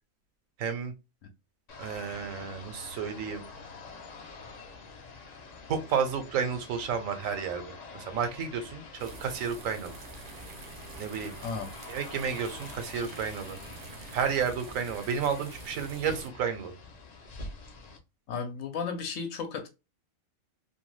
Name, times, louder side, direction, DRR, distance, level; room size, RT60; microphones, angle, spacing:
voice 1, 0.6-0.9 1.8-3.4 5.7-9.9 11.0-11.4 11.9-13.6 14.1-16.8, right 7 dB, 75° right, 1.1 m, -31 dB
sound 1, 1.7-18.0, left 3 dB, 50° left, 0.5 m, -46 dB
sound 2, 9.0-16.3, right 4 dB, 55° right, 0.6 m, -47 dB
voice 2, 18.3-19.7, left 5 dB, 70° left, 1.0 m, -34 dB
2.7 x 2.2 x 3.1 m
omnidirectional pair, 1.4 m